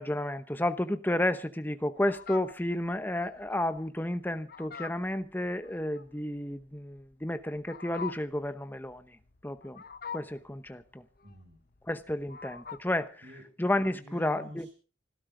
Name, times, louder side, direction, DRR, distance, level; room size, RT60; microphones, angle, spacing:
voice 1, 0.0-9.0 9.4-9.8 10.1-11.0 11.9-13.1 13.6-14.7, left 1 dB, 10° left, 0.9 m, -31 dB
Fowl, 2.0-13.0, left 6 dB, 50° left, 0.9 m, -45 dB
voice 2, 11.2-11.6 13.2-13.4 13.9-14.7, equal, 75° right, 6.5 m, -48 dB
25.5 x 13.0 x 3.8 m
head